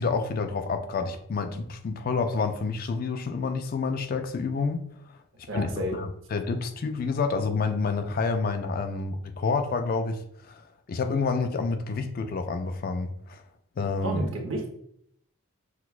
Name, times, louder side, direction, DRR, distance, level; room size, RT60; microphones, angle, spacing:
voice 1, 0.0-4.8 5.5-10.6 10.9-13.4 13.8-14.2, left 4 dB, 45° left, 7 dB, 0.3 m, -28 dB
voice 2, 5.5-6.0 14.0-14.7, right 1 dB, 60° right, 1 dB, 0.8 m, -31 dB
6.0 x 2.3 x 2.4 m, 0.69 s
head